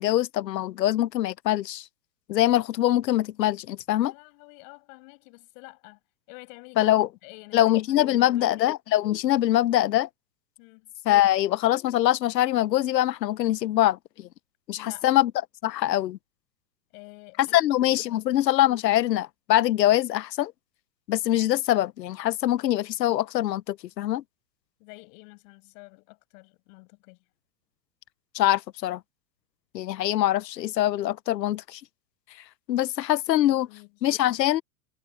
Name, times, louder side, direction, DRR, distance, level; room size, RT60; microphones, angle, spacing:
voice 1, 0.0-1.8 2.3-4.1 6.8-7.1 7.5-10.1 11.0-14.3 14.7-15.3 15.6-16.2 17.4-20.5 21.1-24.2 28.3-29.0 29.7-31.8 32.7-33.7 34.0-34.6, left 13 dB, 80° left, 1.0 m, -23 dB
voice 2, 4.0-6.0 6.3-6.9 7.2-8.7 10.6-10.9 14.8-15.1 16.9-17.7 17.9-18.3 24.8-27.2 33.4-33.9, left 33 dB, 50° left, 7.2 m, -49 dB
hypercardioid pair, 125°, 49 cm